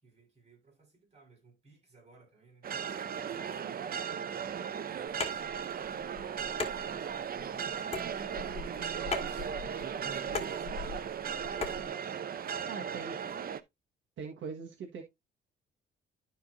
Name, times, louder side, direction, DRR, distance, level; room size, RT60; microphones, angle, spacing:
voice 1, 0.0-3.9 4.8-9.1 9.8-12.1, right 4 dB, 30° right, 5.6 m, -59 dB
sound 1, 2.6-13.6, right 7 dB, 50° right, 0.7 m, -37 dB
sound 2, 5.1-11.9, left 4 dB, 30° left, 2.4 m, -40 dB
voice 2, 9.6-10.2 12.7-13.2 14.2-15.0, right 5 dB, 70° right, 1.6 m, -42 dB
12.5 x 4.6 x 2.6 m
cardioid pair, 90°, 20 cm